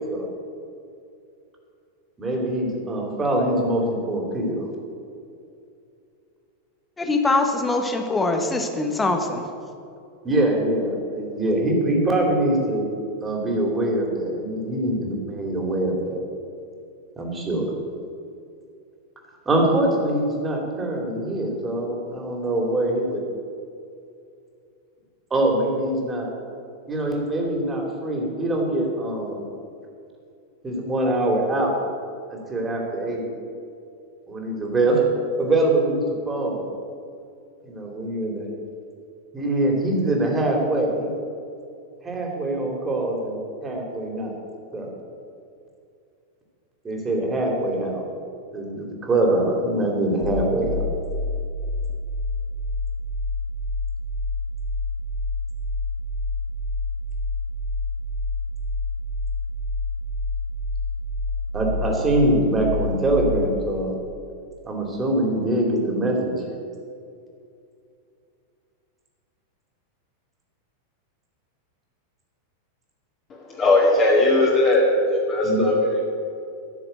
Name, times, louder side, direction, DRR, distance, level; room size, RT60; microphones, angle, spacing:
voice 1, 2.2-4.6 10.2-12.9 13.2-16.2 17.2-17.7 19.5-23.2 25.3-26.3 26.9-29.4 30.6-31.8 32.5-33.3 34.3-35.0 35.4-36.7 37.6-38.5 39.3-41.1 42.0-44.3 44.7-44.9 46.8-48.0 48.5-50.8 61.5-63.9 64.6-66.3 75.4-75.7, right 1 dB, 15° right, 0 dB, 2.7 m, -23 dB
voice 2, 7.0-9.4, left 2 dB, 10° left, 5 dB, 1.3 m, -23 dB
sound 1, 50.2-63.6, left 2 dB, 45° right, 1.5 m, -28 dB
voice 3, 73.3-74.9 75.3-76.0, left 2 dB, 30° left, -4 dB, 2.2 m, -19 dB
12.0 x 6.6 x 8.1 m, 2.5 s
figure-of-eight pair, 90°, 0 cm